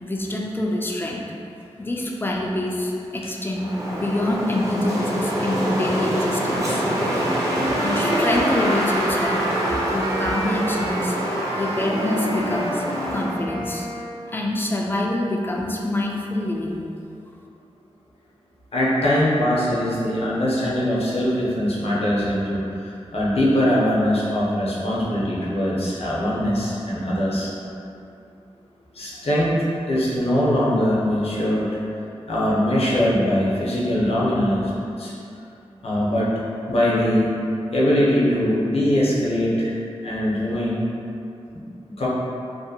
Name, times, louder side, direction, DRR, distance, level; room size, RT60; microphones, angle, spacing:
voice 1, 0.0-1.3 1.8-6.8 7.8-9.5 9.9-11.2 11.5-12.8 13.1-13.9 14.3-16.8, left 1 dB, 20° left, -1 dB, 0.4 m, -26 dB
Wind, 3.5-13.4, equal, 30° right, 0.6 m, -25 dB
sound 1, 6.7-14.2, right 1 dB, 70° right, 0.5 m, -30 dB
voice 2, 18.7-27.5 29.0-29.6 29.9-31.7 32.3-34.7 35.0-35.1 35.8-36.3 36.7-37.3 37.7-39.7 40.0-40.8 42.0-42.1, equal, 65° left, -7 dB, 0.6 m, -21 dB
2.6 x 2.1 x 2.7 m, 2.6 s
cardioid pair, 60°, 11 cm